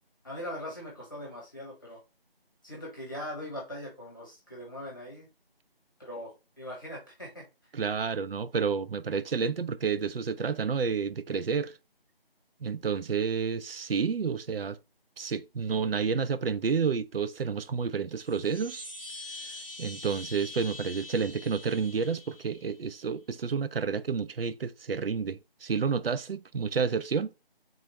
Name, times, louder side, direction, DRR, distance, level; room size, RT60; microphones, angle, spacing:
voice 1, 0.2-2.0 2.6-5.3 6.0-7.8, left 1 dB, 20° left, 1.1 m, -41 dB
voice 2, 7.7-11.7 12.6-14.8 15.2-18.9 19.4-27.3, right 5 dB, 70° right, 0.5 m, -30 dB
Chime, 18.1-22.8, left 2 dB, 15° right, 1.6 m, -44 dB
3.8 x 3.0 x 2.7 m
figure-of-eight pair, 165°, 30 cm